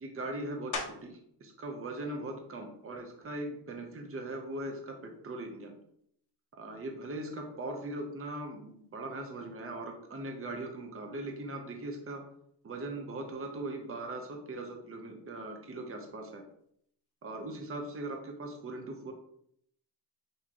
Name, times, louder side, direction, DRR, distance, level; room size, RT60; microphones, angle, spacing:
voice 1, 0.0-5.7 6.5-12.2 12.6-16.4 17.2-19.1, right 2 dB, 30° right, 3 dB, 0.8 m, -40 dB
sound 1, 0.7-1.3 1.9-6.3 6.8-12.0 12.3-17.9, left 3 dB, 45° left, 1.0 m, -49 dB
6.1 x 2.9 x 2.9 m, 0.70 s
cardioid pair, 115°, 41 cm